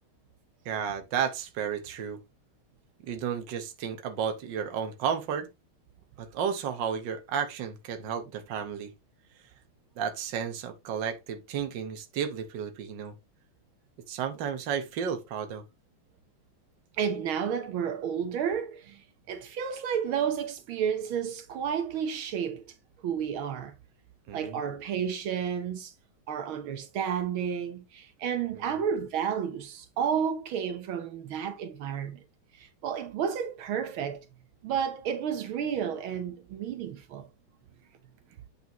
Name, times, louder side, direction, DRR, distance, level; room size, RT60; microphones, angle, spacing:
voice 1, 0.7-2.2 3.0-5.5 6.2-8.9 10.0-13.1 14.1-15.6 24.3-24.6 28.5-28.8, right 7 dB, 65° right, 1.7 m, -32 dB
voice 2, 17.0-22.7 23.0-23.7 24.3-25.9 26.3-32.2 32.5-34.3 34.6-37.3, right 8 dB, 80° right, 1.8 m, -31 dB
8.4 x 6.0 x 2.9 m
omnidirectional pair, 2.2 m